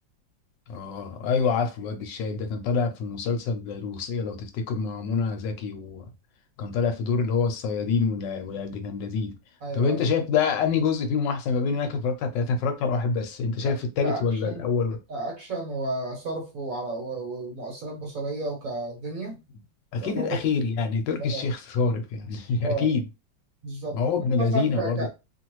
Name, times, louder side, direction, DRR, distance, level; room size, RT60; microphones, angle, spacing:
voice 1, 0.7-6.1 6.6-9.3 9.7-15.0 19.9-23.0 23.9-25.1, left 5 dB, 75° left, 1.2 m, -26 dB
voice 2, 9.6-10.0 13.6-13.7 14.0-14.7 15.1-19.4 20.0-20.4 21.3-21.5 22.6-22.9 23.6-25.1, right 2 dB, 55° right, 1.3 m, -32 dB
2.9 x 2.5 x 2.9 m
omnidirectional pair, 2.0 m